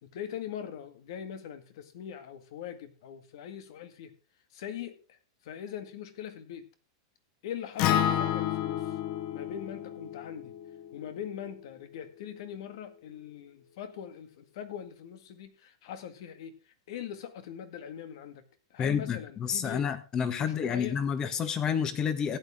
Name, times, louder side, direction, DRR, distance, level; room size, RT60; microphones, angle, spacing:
voice 1, 0.0-4.1 4.5-5.2 5.4-6.7 7.4-9.0 9.3-10.6 10.9-18.4 18.7-19.9 20.4-21.0, left 9 dB, 65° left, 10 dB, 1.9 m, -41 dB
Acoustic guitar, 7.8-12.0, left 11 dB, 45° left, 0.9 m, -31 dB
voice 2, 18.8-22.4, left 7 dB, 25° left, 12 dB, 1.4 m, -29 dB
15.0 x 9.0 x 3.6 m, 0.33 s
hypercardioid pair, 135°, 3 cm